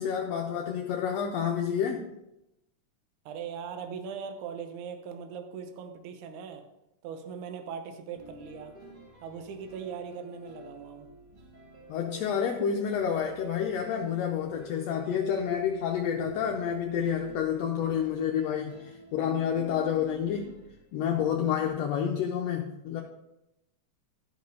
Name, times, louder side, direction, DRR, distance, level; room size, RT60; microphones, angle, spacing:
voice 1, 0.0-2.1 11.9-20.5 20.9-23.0, left 8 dB, 75° left, 1 dB, 1.6 m, -29 dB
voice 2, 3.3-6.6 7.0-8.7 9.2-11.1, right 7 dB, 75° right, 6 dB, 2.2 m, -40 dB
sound 1, 8.1-21.7, equal, 50° right, 2.7 m, -48 dB
12.5 x 5.3 x 3.9 m, 0.89 s
omnidirectional pair, 3.7 m